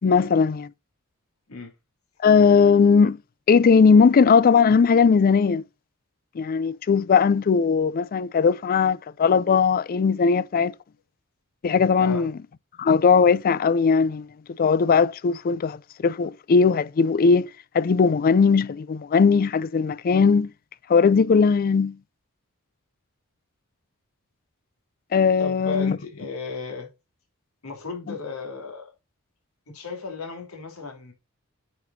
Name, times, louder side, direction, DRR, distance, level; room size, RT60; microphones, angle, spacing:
voice 1, 0.0-0.7 2.2-3.2 3.5-5.6 6.4-10.7 11.6-12.3 12.8-14.3 14.6-20.5 20.9-22.0 25.1-26.0, left 5 dB, 45° left, 0.4 m, -19 dB
voice 2, 12.0-12.3 25.4-26.9 27.6-28.9 29.7-31.1, left 4 dB, 80° left, 3.2 m, -34 dB
9.5 x 5.1 x 2.7 m
head